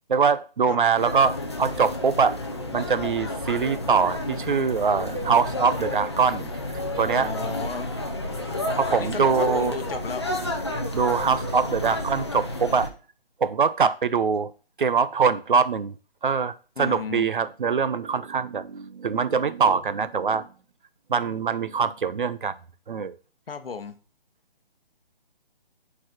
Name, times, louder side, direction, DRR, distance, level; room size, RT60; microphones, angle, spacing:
voice 1, 0.1-2.4 2.7-7.3 8.8-9.7 10.9-12.9 13.4-14.5 14.8-15.9 16.2-20.5 21.1-22.5 22.9-23.2, right 5 dB, 60° right, 0.5 m, -23 dB
sound 1, 0.9-12.9, left 1 dB, 30° left, 0.6 m, -30 dB
voice 2, 7.2-8.0 8.9-10.3 16.8-17.3 23.5-23.9, left 5 dB, 75° left, 0.9 m, -34 dB
5.1 x 4.1 x 5.8 m
hypercardioid pair, 175°, 29 cm